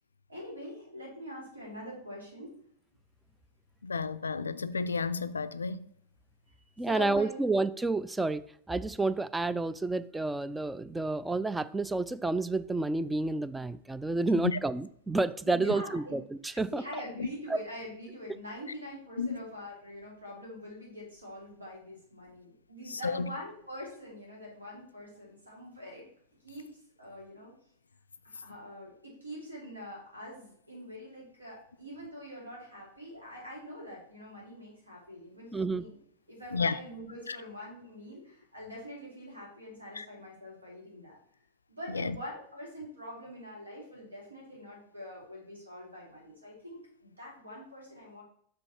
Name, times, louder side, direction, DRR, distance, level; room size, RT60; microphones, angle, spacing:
voice 1, 0.3-2.5 6.8-7.5 15.4-16.2 16.5-26.1 26.4-26.7 27.0-27.5 28.2-35.9 36.3-41.2 41.7-48.2, equal, 80° right, 3.1 m, -44 dB
voice 2, 3.8-5.9 14.4-14.6 17.2-17.3 19.2-19.4 23.0-23.3 36.5-36.7 37.3-37.4 40.0-40.1 41.9-42.2, left 4 dB, 75° left, 0.3 m, -31 dB
voice 3, 6.8-16.8 17.5-17.6 35.5-35.8, right 2 dB, 10° right, 0.3 m, -30 dB
6.4 x 5.2 x 4.3 m
figure-of-eight pair, 90°, 0 cm